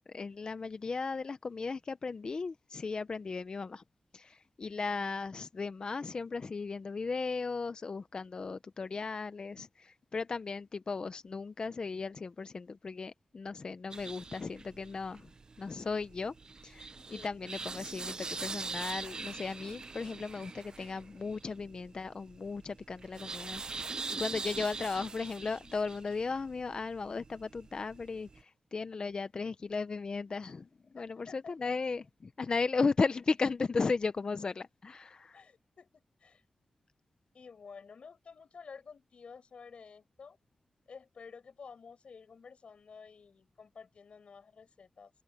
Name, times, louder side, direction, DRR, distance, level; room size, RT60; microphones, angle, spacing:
voice 1, 0.1-3.8 4.1-15.3 15.6-16.3 16.6-23.8 24.2-30.7 30.9-35.4, left 4 dB, 40° left, 0.5 m, -36 dB
sound 1, 13.9-28.4, right 4 dB, 35° right, 0.5 m, -43 dB
voice 2, 17.1-17.4 24.2-24.3 31.0-31.7 35.3-36.4 37.3-40.4 40.9-45.1, left 5 dB, 60° left, 6.3 m, -52 dB
wide cardioid pair, 145°, 2 cm